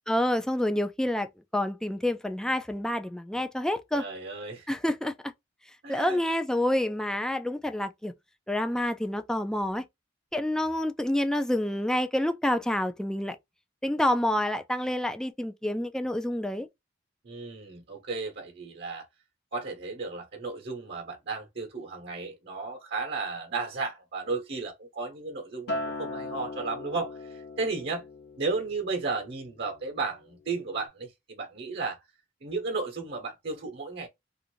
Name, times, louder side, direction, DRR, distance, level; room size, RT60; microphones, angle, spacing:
voice 1, 0.1-1.3 1.5-4.0 4.7-5.3 5.9-8.1 8.5-9.8 10.3-13.4 13.8-16.7, left 1 dB, 5° left, 0.3 m, -28 dB
voice 2, 3.9-4.7 5.8-6.2 17.2-19.1 19.5-28.0 28.4-32.0 32.4-34.1, right 3 dB, 60° right, 0.9 m, -34 dB
Acoustic guitar, 25.7-30.1 30.5-30.9, left 2 dB, 60° left, 0.8 m, -39 dB
2.6 x 2.5 x 2.9 m
head